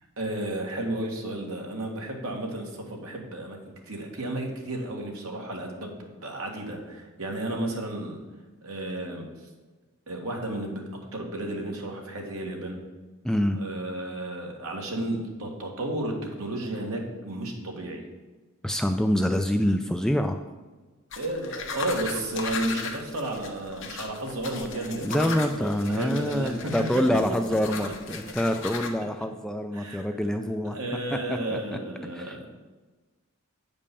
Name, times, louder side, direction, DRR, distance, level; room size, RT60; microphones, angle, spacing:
voice 1, 0.2-3.6 3.9-8.2 8.6-9.2 10.1-10.8 11.1-12.8 13.6-18.0 21.2-26.7 29.7-30.1 30.7-32.5, right 1 dB, 75° right, 1 dB, 1.8 m, -33 dB
voice 2, 13.2-13.6 18.6-20.4 25.0-30.8 31.1-31.8 32.1-32.4, equal, 5° left, 6 dB, 0.3 m, -26 dB
sound 1, 21.1-28.9, left 4 dB, 55° left, 0.9 m, -37 dB
8.6 x 5.3 x 6.8 m, 1.3 s
head